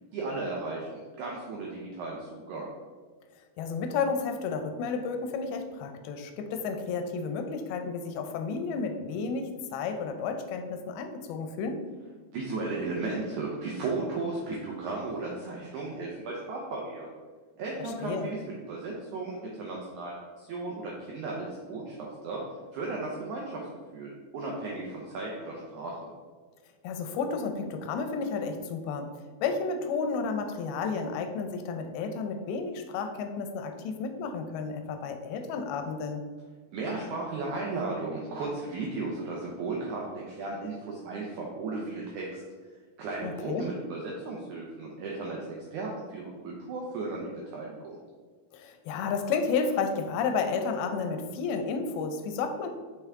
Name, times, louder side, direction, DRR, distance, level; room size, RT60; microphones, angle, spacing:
voice 1, 0.1-2.7 12.3-17.1 17.6-18.4 18.7-22.4 22.7-23.6 23.9-26.1 36.7-42.4 43.0-45.4 45.7-47.9, right 3 dB, 80° right, -2 dB, 1.7 m, -35 dB
voice 2, 3.6-11.8 17.8-18.3 26.8-29.1 29.4-36.2 43.2-43.7 48.5-52.7, left 5 dB, 80° left, 6 dB, 2.5 m, -32 dB
5.8 x 5.7 x 3.5 m, 1.5 s
omnidirectional pair, 4.5 m